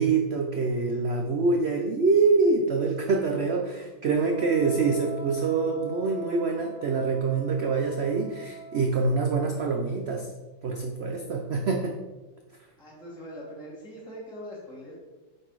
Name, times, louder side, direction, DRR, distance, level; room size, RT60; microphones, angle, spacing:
voice 1, 0.0-10.3 10.6-12.0, right 4 dB, 80° right, 2 dB, 0.5 m, -25 dB
Wind instrument woodwind instrument, 4.3-9.0, right 3 dB, 60° right, 2.4 m, -42 dB
voice 2, 12.8-15.0, equal, 5° left, -6 dB, 1.4 m, -42 dB
7.6 x 4.0 x 4.7 m, 1.2 s
omnidirectional pair, 1.9 m